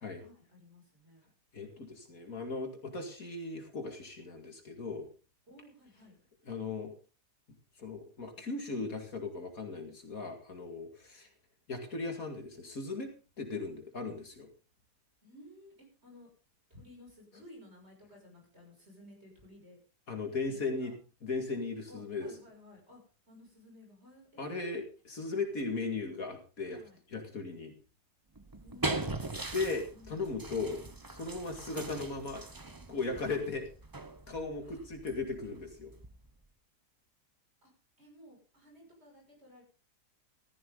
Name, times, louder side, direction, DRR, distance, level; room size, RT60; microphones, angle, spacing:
voice 1, 0.1-1.3 5.5-6.2 15.2-16.3 16.7-19.8 20.4-20.9 21.9-23.0 23.3-24.8 25.6-25.7 26.6-27.0 28.6-29.2 29.9-30.3 34.6-34.8 37.6-37.7 38.0-39.6, left 1 dB, 40° right, 1 dB, 6.7 m, -55 dB
voice 2, 1.5-5.1 6.5-6.9 7.8-11.3 11.7-13.1 13.4-14.5 20.1-20.9 21.2-22.3 24.4-24.8 25.1-26.8 27.1-27.7 29.5-30.8 31.1-32.4 32.9-33.7 34.3-35.9, left 3 dB, 55° left, 4 dB, 2.6 m, -37 dB
sound 1, 28.3-36.4, right 2 dB, 20° right, 0.7 m, -41 dB
15.5 x 14.0 x 3.9 m, 0.35 s
omnidirectional pair, 1.7 m